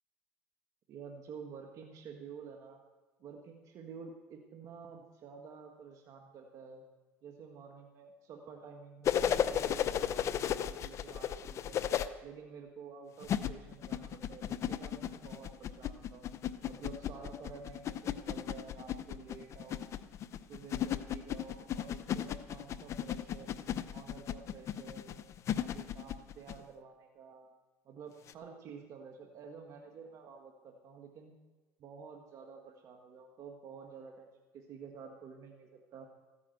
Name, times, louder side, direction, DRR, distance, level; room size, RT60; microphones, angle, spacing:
voice 1, 0.9-2.8 3.2-6.8 7.2-11.8 12.2-16.3 16.7-20.0 20.5-23.5 23.9-25.2 25.5-27.5 27.8-31.3 31.8-34.3 34.5-36.1, right 6 dB, 50° right, 3 dB, 1.6 m, -50 dB
sound 1, 9.0-12.1 13.2-26.6 28.3-28.4, left 10 dB, 45° left, 0.8 m, -34 dB
15.0 x 9.7 x 8.0 m, 1.3 s
supercardioid pair, 100°, 7 cm